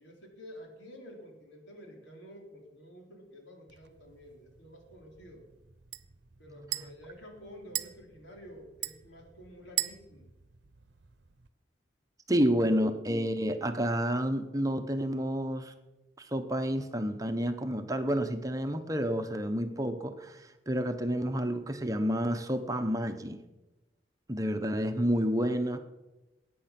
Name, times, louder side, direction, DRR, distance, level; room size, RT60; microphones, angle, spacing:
voice 1, 0.0-5.5 6.4-10.3 12.3-12.7, equal, 80° left, 1 dB, 4.0 m, -50 dB
sound 1, 3.7-11.5, right 14 dB, 70° right, 0.8 m, -42 dB
voice 2, 12.3-15.7 16.2-23.4 24.3-25.8, equal, 20° right, 6 dB, 0.9 m, -30 dB
20.5 x 9.4 x 6.0 m, 1.0 s
head